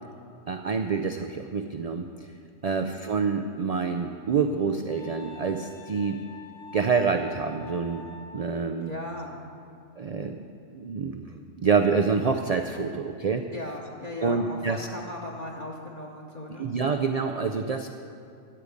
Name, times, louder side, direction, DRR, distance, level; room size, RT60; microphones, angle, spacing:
voice 1, 0.5-2.1 2.6-6.2 6.7-8.0 8.3-8.9 10.0-13.4 14.2-14.9 16.5-17.9, right 5 dB, 70° right, 6 dB, 0.3 m, -27 dB
Wind instrument woodwind instrument, 4.9-8.5, left 4 dB, 90° left, 2.0 m, -46 dB
voice 2, 8.8-9.3 13.5-16.7, left 1 dB, 35° left, -1 dB, 1.1 m, -37 dB
13.0 x 5.1 x 8.3 m, 2.5 s
omnidirectional pair, 1.2 m